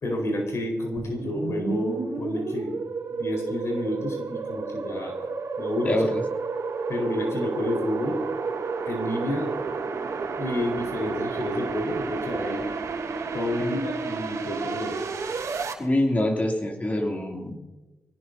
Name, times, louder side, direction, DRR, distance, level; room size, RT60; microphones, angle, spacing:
voice 1, 0.0-2.7 3.1-5.3 5.6-6.1 6.9-8.2 8.8-9.5 10.3-12.6 13.3-15.0, left 1 dB, 55° left, 1 dB, 4.6 m, -29 dB
sound 1, 1.0-15.7, right 4 dB, 65° right, 3.2 m, -31 dB
voice 2, 5.8-6.2 13.6-13.7 15.8-17.5, left 1 dB, 25° left, 1 dB, 2.9 m, -25 dB
24.5 x 18.0 x 2.8 m, 1.1 s
wide cardioid pair, 125°, 6 cm